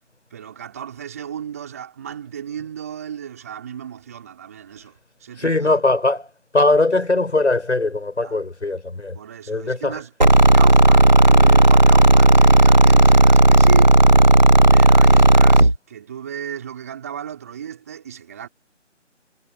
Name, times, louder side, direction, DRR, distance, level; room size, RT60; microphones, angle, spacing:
voice 1, 0.3-5.8 8.2-8.4 9.2-10.1 10.5-14.0 14.7-18.5, right 9 dB, 15° right, 5.2 m, -34 dB
voice 2, 5.4-6.3 6.5-9.2 9.5-10.0, left 2 dB, 65° left, 7.1 m, -20 dB
sound 1, 10.2-15.8, right 1 dB, 35° right, 0.8 m, -11 dB
figure-of-eight pair, 175°, 37 cm